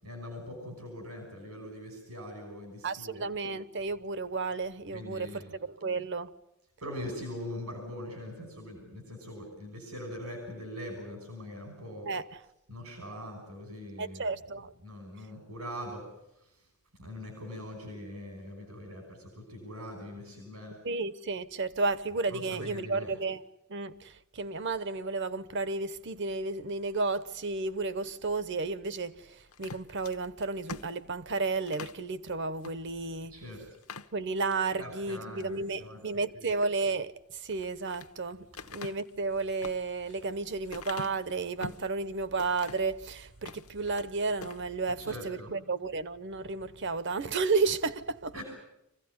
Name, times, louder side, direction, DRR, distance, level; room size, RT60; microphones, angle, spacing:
voice 1, 0.0-3.2 4.9-5.6 6.8-12.1 12.7-14.3 14.8-16.0 16.3-16.7 17.0-20.8 22.3-23.1 33.3-33.8 34.8-36.0 36.3-36.5 45.0-45.5 48.3-48.4, left 1 dB, 90° right, 5.8 m, -42 dB
voice 2, 2.8-6.3 12.1-12.4 14.0-14.7 20.8-23.4 23.7-33.3 34.1-48.3, right 3 dB, 55° right, 0.9 m, -32 dB
sound 1, 29.5-32.0 32.6-32.8 33.2-33.3 33.7-34.6 35.1-35.6 37.4-38.1 38.6-41.9 42.4-42.9 43.3-44.1 44.4-44.7, left 4 dB, 70° left, 0.9 m, -44 dB
25.5 x 16.5 x 9.7 m
head